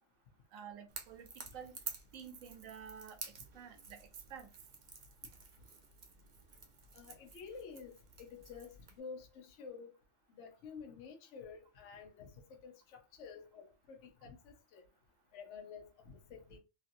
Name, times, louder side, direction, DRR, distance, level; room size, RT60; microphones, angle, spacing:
voice 1, 0.5-1.7 2.1-4.5, right 7 dB, 80° right, 1.1 m, -51 dB
Crackle / Crack, 0.9-9.0, right 5 dB, 45° right, 0.6 m, -51 dB
voice 2, 6.9-7.9 8.2-9.9 10.4-14.8 15.3-16.6, left 5 dB, 65° left, 1.0 m, -50 dB
3.0 x 2.7 x 2.6 m
omnidirectional pair, 1.4 m